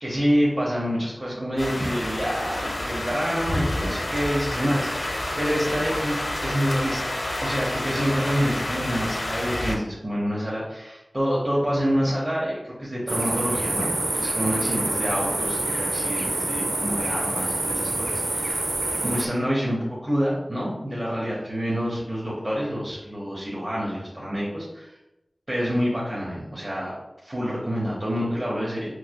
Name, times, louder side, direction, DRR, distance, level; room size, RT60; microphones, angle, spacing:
voice 1, 0.0-5.1 5.4-7.1 7.4-18.7 19.0-24.9 25.5-26.9 27.2-28.9, equal, 35° right, -6 dB, 0.9 m, -27 dB
sound 1, 1.6-9.8, left 1 dB, 70° left, 0.8 m, -29 dB
sound 2, 13.1-19.3, right 2 dB, 70° right, 0.4 m, -27 dB
5.3 x 3.2 x 2.2 m, 0.92 s
wide cardioid pair, 55°, 0 cm